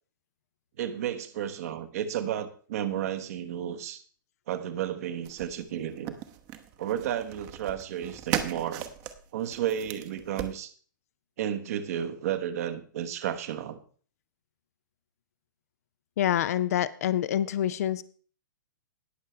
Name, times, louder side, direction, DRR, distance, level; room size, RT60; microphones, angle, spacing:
voice 1, 0.8-4.0 4.5-6.2 6.8-8.9 9.3-10.7 11.4-13.8, right 10 dB, 45° right, 10 dB, 1.1 m, -32 dB
sound 1, 5.2-10.6, right 11 dB, 30° right, 1.0 m, -37 dB
voice 2, 16.2-18.0, left 11 dB, 45° left, 15 dB, 0.5 m, -26 dB
20.0 x 6.6 x 3.2 m, 0.42 s
figure-of-eight pair, 115°, 11 cm